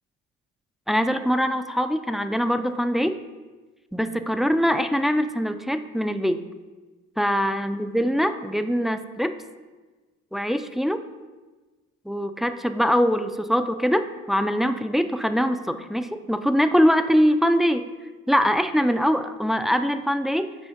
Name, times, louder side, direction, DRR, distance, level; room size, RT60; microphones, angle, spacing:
voice 1, 0.9-3.2 3.9-6.4 7.2-9.4 10.3-11.0 12.1-17.9 18.3-20.6, equal, ahead, 9 dB, 0.3 m, -23 dB
6.2 x 4.3 x 5.7 m, 1.3 s
cardioid pair, 90°, 30 cm